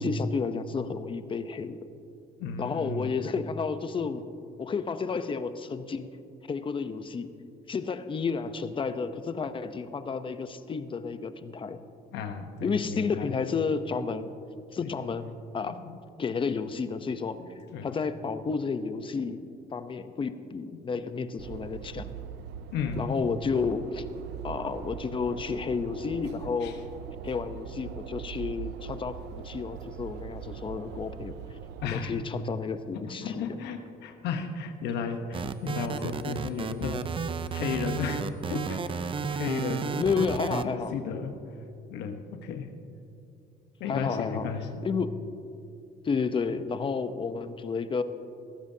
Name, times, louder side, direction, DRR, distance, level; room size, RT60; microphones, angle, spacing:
voice 1, 0.0-1.9 2.6-4.2 4.6-6.1 6.5-7.3 7.7-11.8 12.6-14.3 14.7-15.8 16.2-17.4 17.8-22.1 23.0-24.1 24.4-26.8 27.2-31.4 31.8-33.5 40.0-40.9 43.9-44.5 44.8-45.2 46.0-48.0, left 5 dB, 30° left, 10 dB, 0.8 m, -31 dB
voice 2, 2.4-3.1 12.1-13.3 14.8-15.0 15.6-16.0 17.3-18.0 20.7-20.8 22.7-23.2 26.6-26.8 31.8-32.1 32.9-37.1 37.5-40.0 40.6-41.3 41.9-42.7 43.8-44.8, left 6 dB, 85° left, 6 dB, 1.1 m, -34 dB
sound 1, 21.4-31.9, right 9 dB, 80° right, 0.6 m, -41 dB
sound 2, 35.3-40.6, right 6 dB, 30° right, 0.6 m, -32 dB
20.5 x 14.5 x 2.8 m, 2.7 s
cardioid pair, 110°, 17 cm